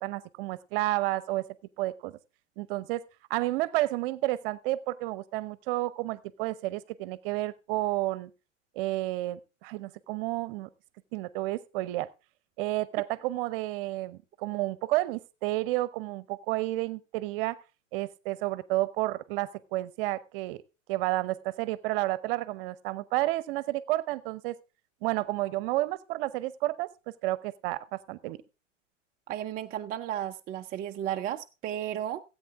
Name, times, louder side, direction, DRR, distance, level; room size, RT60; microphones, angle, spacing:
voice 1, 0.0-1.5 1.8-2.1 2.6-8.3 8.7-10.7 11.1-12.1 12.6-17.6 17.9-20.6 20.9-24.5 25.0-26.9 27.2-28.4, right 17 dB, 45° right, 0.9 m, -31 dB
voice 2, 29.3-32.2, right 11 dB, 25° right, 0.5 m, -34 dB
16.5 x 8.8 x 3.6 m
hypercardioid pair, 100°, 38 cm